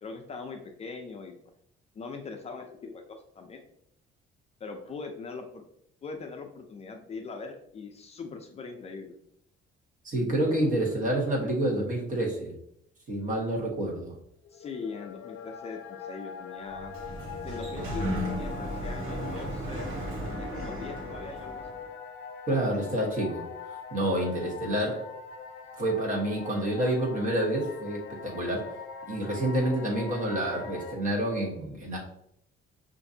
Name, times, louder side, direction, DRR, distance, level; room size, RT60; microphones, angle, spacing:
voice 1, 0.0-1.4 1.9-3.6 4.6-5.6 6.0-9.1 14.5-16.9 17.4-19.9 20.3-21.8, left 4 dB, 30° left, 3 dB, 0.4 m, -41 dB
voice 2, 10.0-12.5 13.1-14.1 22.5-25.0 25.8-28.7 29.1-32.0, right 1 dB, 40° right, -2 dB, 1.2 m, -28 dB
sound 1, 14.4-30.9, left 6 dB, 85° left, 0.6 m, -42 dB
Sliding door, 16.6-21.8, right 1 dB, 80° right, 0.9 m, -35 dB
5.6 x 2.5 x 2.6 m, 0.72 s
cardioid pair, 160°, 21 cm